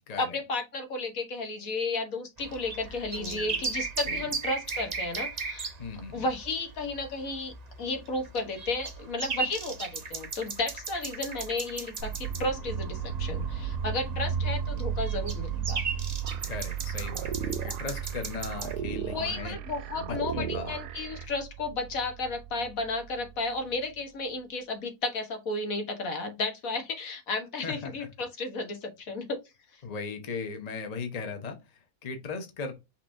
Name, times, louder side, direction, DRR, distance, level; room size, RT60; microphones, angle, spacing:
voice 1, 0.2-5.7 6.1-7.5 7.8-15.8 19.1-29.4 29.7-29.8, left 3 dB, 65° left, 1.5 m, -33 dB
sound 1, 2.4-18.8, right 5 dB, 35° right, 0.7 m, -37 dB
voice 2, 3.2-3.6 4.1-4.3 5.8-6.3 14.2-14.3 16.5-19.6 20.0-20.8 21.2-21.3 27.6-28.1 29.8-32.7, left 4 dB, 30° left, 1.0 m, -38 dB
sound 2, 12.0-23.9, right 7 dB, 65° right, 0.9 m, -35 dB
sound 3, 16.2-21.2, right 10 dB, 90° right, 1.1 m, -38 dB
5.7 x 3.4 x 2.6 m
omnidirectional pair, 1.6 m